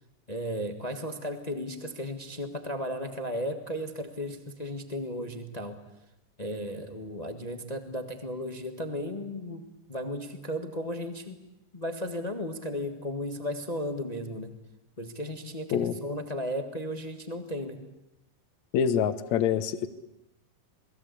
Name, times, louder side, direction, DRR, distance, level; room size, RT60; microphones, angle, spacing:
voice 1, 0.3-5.8 6.4-11.4 11.7-14.5 15.0-17.8, equal, 40° left, 6 dB, 0.5 m, -35 dB
voice 2, 18.7-19.9, left 8 dB, 65° left, 12 dB, 2.3 m, -25 dB
28.5 x 21.0 x 8.4 m, 0.86 s
omnidirectional pair, 3.9 m